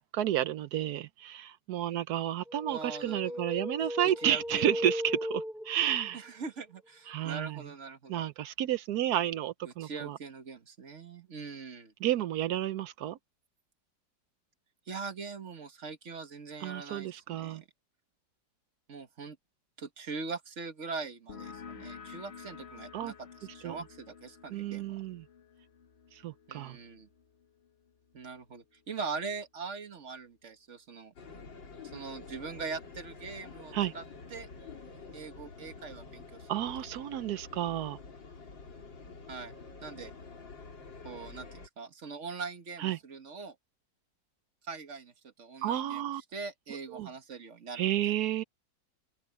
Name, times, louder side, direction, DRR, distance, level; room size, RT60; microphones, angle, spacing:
voice 1, 0.0-6.2 7.1-7.6 8.1-10.2 12.0-13.2 16.6-17.6 22.9-23.1 23.6-23.8 24.5-25.2 26.1-26.8 33.7-33.9 36.5-38.0 42.8-43.0 45.6-46.2 46.9-47.1 47.7-48.4, right 11 dB, 70° right, 1.0 m, -31 dB
sound 1, 2.5-6.1, equal, ahead, 0.8 m, -36 dB
voice 2, 2.7-3.4 3.8-3.9 4.2-4.8 6.1-8.3 9.6-11.9 14.9-17.7 18.9-19.4 19.8-23.3 23.5-25.0 26.5-27.1 28.1-31.1 31.8-34.0 34.3-34.5 35.1-36.6 39.3-39.5 39.8-40.1 41.0-43.6 44.6-46.0 46.3-48.1, right 4 dB, 40° right, 1.7 m, -42 dB
sound 2, 21.3-28.6, left 6 dB, 40° left, 1.2 m, -50 dB
sound 3, 31.2-41.7, left 4 dB, 85° left, 3.8 m, -48 dB
open air
omnidirectional pair, 2.0 m